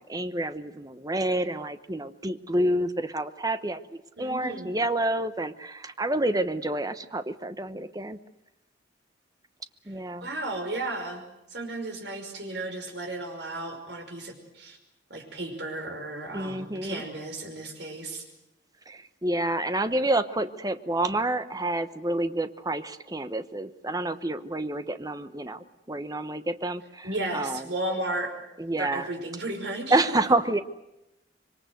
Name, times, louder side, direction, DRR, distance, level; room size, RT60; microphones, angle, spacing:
voice 1, 0.0-8.2 9.9-10.3 16.3-17.0 18.9-27.1 27.3-27.7 28.6-29.1 29.9-30.6, right 1 dB, 20° right, 11 dB, 1.0 m, -28 dB
voice 2, 4.2-4.8 10.2-11.2 11.5-14.8 15.1-18.2 27.0-28.3 28.8-30.3, right 2 dB, 60° right, 4 dB, 5.5 m, -34 dB
26.0 x 23.5 x 8.0 m, 0.91 s
head